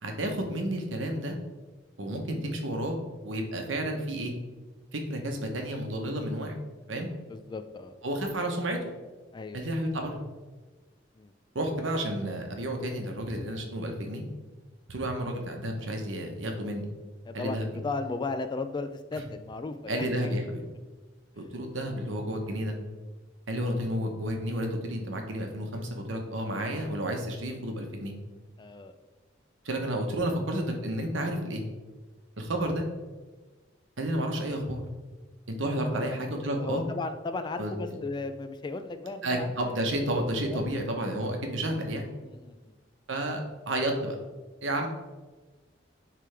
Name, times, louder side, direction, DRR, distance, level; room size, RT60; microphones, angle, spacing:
voice 1, 0.0-1.4 2.0-3.0 3.2-4.3 4.9-6.5 6.9-7.1 8.0-8.8 9.5-10.2 11.5-14.2 14.9-16.8 17.3-17.7 19.1-19.2 19.9-20.6 21.4-22.8 23.5-28.1 29.6-31.6 32.4-32.8 34.0-34.8 35.5-36.8 37.6-37.7 39.2-42.1 43.1-44.1 44.6-44.9, right 1 dB, 75° right, 3 dB, 1.0 m, -31 dB
voice 2, 7.3-7.9 9.3-9.7 11.2-11.3 17.3-20.4 21.4-21.5 28.6-28.9 35.9-36.2 36.5-39.8 40.5-40.7 42.2-42.6, left 3 dB, 25° left, 9 dB, 0.3 m, -36 dB
10.0 x 3.4 x 3.3 m, 1.3 s
head